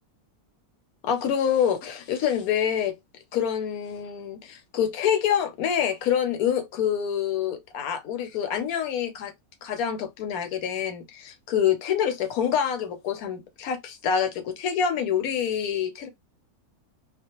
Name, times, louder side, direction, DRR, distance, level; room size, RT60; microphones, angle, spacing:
voice 1, 1.0-3.0 3.3-9.3 9.6-16.1, left 8 dB, 75° left, 1.1 m, -26 dB
2.4 x 2.1 x 2.9 m
omnidirectional pair, 1.5 m